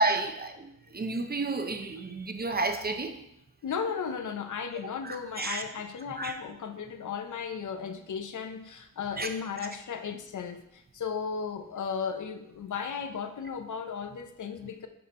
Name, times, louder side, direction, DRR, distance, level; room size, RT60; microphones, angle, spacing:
voice 1, 0.0-3.1 5.0-5.6 6.2-6.4 9.2-9.3, right 2 dB, 30° right, 5 dB, 0.6 m, -30 dB
voice 2, 3.6-14.9, left 6 dB, 60° left, 8 dB, 0.6 m, -35 dB
5.4 x 4.2 x 5.3 m, 0.81 s
wide cardioid pair, 115°, 34 cm